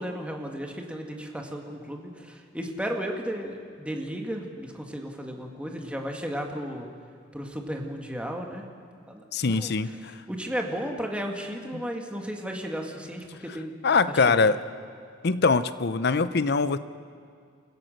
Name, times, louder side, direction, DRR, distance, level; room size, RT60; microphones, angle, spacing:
voice 1, 0.0-6.9 7.3-8.7 9.1-10.0 10.3-13.7 14.1-14.5, equal, 5° right, 2 dB, 2.0 m, -34 dB
voice 2, 9.3-10.1 11.7-11.8 13.8-14.6 15.2-16.8, left 4 dB, 60° left, 14 dB, 0.7 m, -23 dB
28.5 x 15.5 x 6.6 m, 2.2 s
head